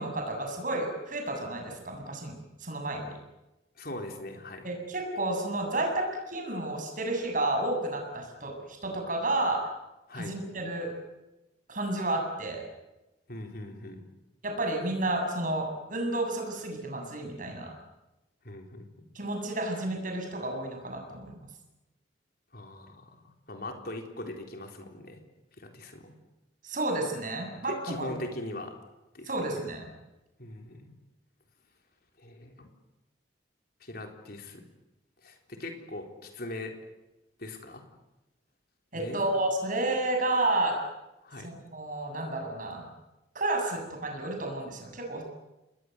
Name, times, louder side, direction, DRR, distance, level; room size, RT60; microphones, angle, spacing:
voice 1, 0.0-3.2 4.6-9.7 10.1-10.9 11.7-12.6 14.4-17.7 19.1-21.3 26.6-28.1 29.3-29.9 38.9-40.8 41.4-42.9 43.3-45.2, right 2 dB, 45° right, 3 dB, 7.5 m, -31 dB
voice 2, 3.8-4.7 10.1-10.4 13.3-14.0 18.4-19.1 22.5-25.2 25.6-26.2 27.5-28.8 29.1-29.6 30.4-31.0 32.2-32.7 33.8-34.6 35.2-36.8 37.4-37.8 38.9-39.3 41.2-41.6, left 1 dB, 55° left, 3 dB, 4.0 m, -41 dB
29.0 x 21.0 x 8.1 m, 1.0 s
head